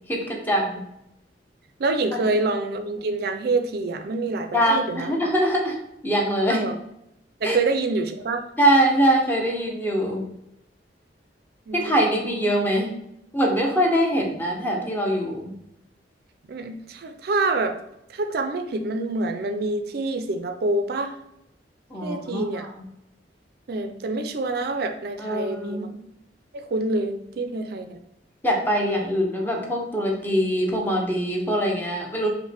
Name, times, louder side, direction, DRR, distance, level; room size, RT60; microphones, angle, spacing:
voice 1, 0.1-0.8 4.5-5.8 6.0-6.6 7.4-7.6 8.6-10.2 11.7-12.9 13.3-15.5 21.9-22.7 25.2-25.9 28.4-32.3, equal, 10° left, 0 dB, 0.7 m, -23 dB
voice 2, 1.8-5.1 6.5-6.8 7.4-8.4 11.7-12.1 16.5-17.7 18.1-21.1 22.0-22.7 23.7-25.9 26.5-28.0, right 2 dB, 60° right, 7 dB, 0.4 m, -26 dB
5.2 x 2.1 x 3.3 m, 0.81 s
head